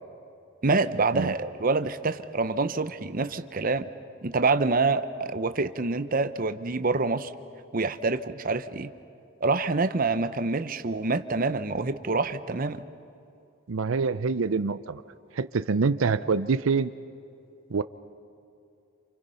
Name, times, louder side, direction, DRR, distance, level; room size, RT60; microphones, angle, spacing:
voice 1, 0.6-3.9 4.2-7.3 7.7-8.9 9.4-12.8, right 3 dB, 45° right, 11 dB, 0.8 m, -26 dB
voice 2, 13.7-15.0 15.3-16.9 17.7-17.8, right 4 dB, 85° right, 12 dB, 0.6 m, -25 dB
28.5 x 28.5 x 5.7 m, 2.6 s
head